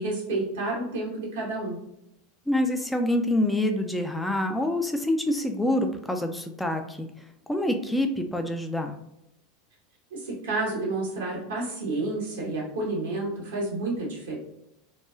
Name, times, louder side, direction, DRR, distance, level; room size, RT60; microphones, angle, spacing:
voice 1, 0.0-1.8 10.1-14.4, right 2 dB, 75° right, -4 dB, 1.0 m, -30 dB
voice 2, 2.5-7.1 7.5-9.0, left 1 dB, 5° left, 5 dB, 0.4 m, -26 dB
3.0 x 2.2 x 2.3 m, 0.81 s
hypercardioid pair, 85°, 0 cm